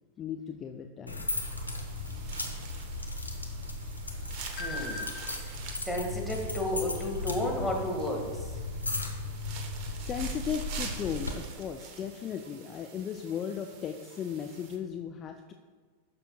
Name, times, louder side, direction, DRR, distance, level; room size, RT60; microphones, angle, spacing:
voice 1, 0.2-1.3 10.0-15.5, left 8 dB, 30° left, 5 dB, 0.4 m, -36 dB
sound 1, 1.1-11.3, left 2 dB, 85° left, 0.9 m, -36 dB
sound 2, 1.3-14.8, right 5 dB, 45° right, 1.1 m, -47 dB
sound 3, 4.4-7.6, left 3 dB, 45° left, 2.3 m, -46 dB
voice 2, 4.6-5.1 5.8-8.5, left 1 dB, ahead, -1 dB, 1.7 m, -32 dB
11.5 x 6.8 x 2.3 m, 1.5 s
figure-of-eight pair, 90°, 0 cm